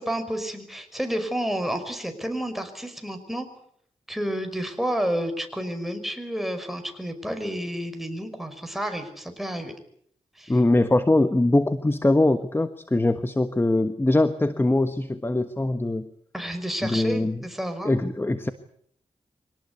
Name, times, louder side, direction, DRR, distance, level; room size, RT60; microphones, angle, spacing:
voice 1, 0.0-3.5 4.1-9.7 10.4-10.6 16.3-17.9, equal, ahead, 6 dB, 5.4 m, -30 dB
voice 2, 10.5-16.1 16.8-17.4 17.8-18.5, left 2 dB, 20° left, 10 dB, 1.4 m, -22 dB
25.0 x 18.5 x 8.4 m, 0.66 s
cardioid pair, 75°, 12 cm